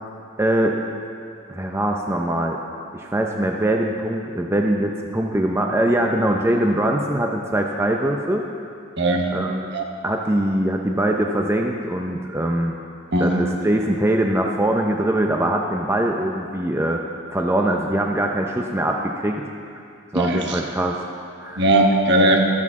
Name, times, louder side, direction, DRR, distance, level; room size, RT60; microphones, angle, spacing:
voice 1, 0.4-0.8 1.5-2.6 2.9-8.4 9.3-9.7 10.0-12.7 13.2-17.0 17.3-19.5 20.1-21.0 21.4-21.6, right 1 dB, 10° right, 1 dB, 0.5 m, -22 dB
voice 2, 9.0-9.4 9.7-9.8 13.1-13.4 20.1-20.6 21.6-22.5, right 1 dB, 55° right, 2 dB, 1.3 m, -18 dB
14.0 x 13.0 x 3.7 m, 2.4 s
head